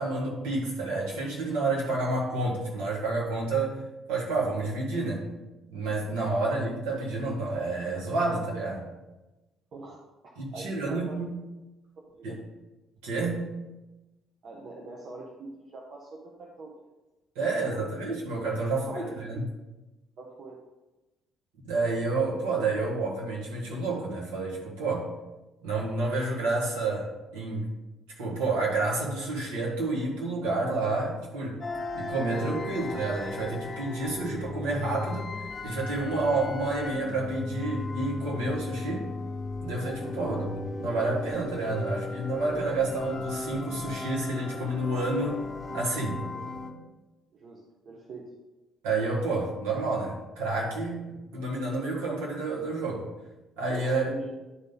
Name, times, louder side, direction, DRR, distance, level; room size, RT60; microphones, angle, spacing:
voice 1, 0.0-3.8 4.1-5.3 5.7-8.9 10.4-11.4 12.2-12.4 13.0-13.5 17.4-19.4 21.6-25.1 25.6-27.7 28.2-31.6 31.9-35.3 35.6-39.1 39.6-40.5 40.8-45.4 45.7-46.2 48.8-53.1 53.6-54.1, right 2 dB, 70° right, -4 dB, 1.8 m, -29 dB
voice 2, 10.2-11.2 12.0-12.4 14.4-16.9 17.4-17.8 18.7-19.0 19.3-19.4 20.2-20.6 40.2-40.4 46.3-46.5 47.3-48.4 53.8-54.4, right 3 dB, 50° right, -1 dB, 1.0 m, -43 dB
sound 1, 31.6-46.7, left 3 dB, 35° left, 1.2 m, -36 dB
10.5 x 4.0 x 3.9 m, 1.1 s
figure-of-eight pair, 45°, 0 cm